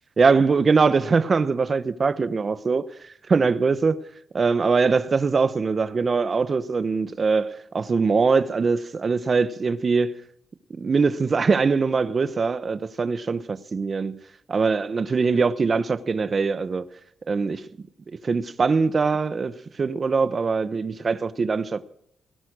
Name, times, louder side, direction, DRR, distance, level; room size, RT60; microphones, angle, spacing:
voice 1, 0.2-4.0 4.3-10.2 10.8-14.2 14.5-16.9 17.3-17.7 18.2-21.9, right 4 dB, 35° right, 0.9 m, -22 dB
17.5 x 12.5 x 6.2 m
cardioid pair, 110°, 0 cm